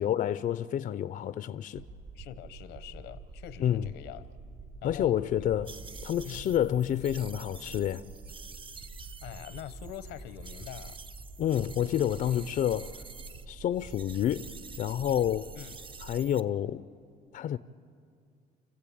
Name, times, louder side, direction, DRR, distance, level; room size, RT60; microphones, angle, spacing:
voice 1, 0.0-1.8 3.6-3.9 4.8-5.7 6.0-8.0 11.4-12.9 13.5-14.5 14.8-15.5 16.0-16.8 17.3-17.6, left 10 dB, 50° left, 0.5 m, -29 dB
sound 1, 1.8-16.2, right 3 dB, 50° right, 4.9 m, -47 dB
voice 2, 2.1-4.3 4.8-5.5 6.2-6.5 9.2-11.0 15.5-15.8, left 12 dB, 90° left, 1.0 m, -44 dB
sound 2, 5.6-13.4 13.7-16.4, right 4 dB, 30° right, 0.8 m, -49 dB
28.5 x 15.0 x 8.6 m
cardioid pair, 110°, 17 cm